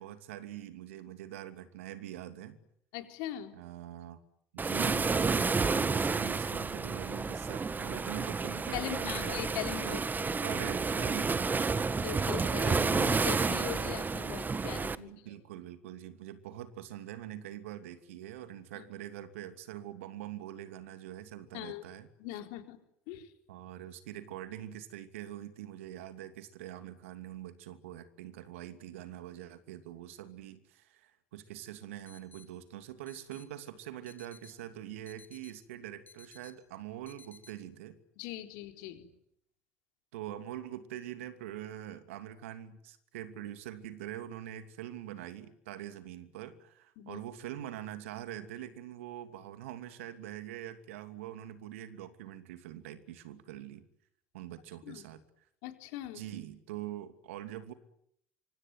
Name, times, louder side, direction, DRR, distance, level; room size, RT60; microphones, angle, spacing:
voice 1, 0.0-2.6 3.5-4.2 4.5-9.4 9.8-10.0 10.4-11.9 15.0-22.1 23.5-38.0 40.1-53.9 54.3-55.2 56.1-57.7, right 12 dB, 80° right, 10 dB, 2.8 m, -44 dB
voice 2, 2.9-3.6 8.7-10.4 12.0-15.1 18.8-18.9 21.5-21.8 22.2-22.8 23.1-23.3 38.2-39.1 47.0-47.2 54.8-55.0 55.6-56.2, left 13 dB, 70° left, 6 dB, 4.2 m, -40 dB
Waves surf, 4.6-14.9, right 4 dB, 25° right, 1.5 m, -30 dB
sound 1, 32.1-32.5 33.1-33.5 34.1-34.5 35.1-35.5 36.1-36.5 37.1-37.5, left 4 dB, 25° left, 3.8 m, -56 dB
25.5 x 25.0 x 9.3 m, 0.72 s
hypercardioid pair, 60°, 7 cm